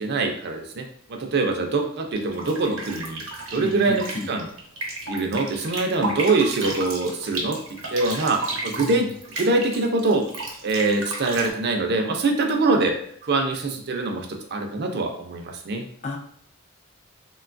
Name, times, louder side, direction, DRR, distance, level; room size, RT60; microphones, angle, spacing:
voice 1, 0.0-3.2 3.5-4.5 5.1-9.1 9.4-10.3 10.6-13.0 13.3-15.8, right 3 dB, 55° right, 3 dB, 0.4 m, -24 dB
sound 1, 2.2-11.5, right 2 dB, 85° right, 0.7 m, -33 dB
voice 2, 3.5-4.3 8.7-9.2 16.0-16.2, left 2 dB, 35° left, 2 dB, 0.4 m, -33 dB
3.1 x 2.2 x 2.5 m, 0.63 s
head